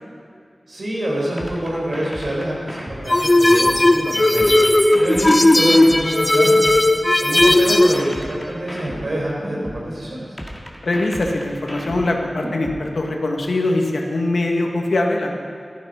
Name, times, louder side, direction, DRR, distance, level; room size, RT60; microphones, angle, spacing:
voice 1, 0.7-4.7 5.0-6.7 7.2-10.3, right 1 dB, 70° right, -3 dB, 4.5 m, -26 dB
sound 1, 1.4-3.9 4.4-6.9 7.4-9.9 10.4-12.9, equal, 5° right, 2.0 m, -33 dB
sound 2, 3.1-8.0, left 1 dB, 35° left, 0.9 m, -15 dB
voice 2, 10.8-15.3, left 2 dB, 80° left, 1 dB, 1.6 m, -22 dB
14.5 x 12.0 x 5.4 m, 2.4 s
wide cardioid pair, 70°, 0 cm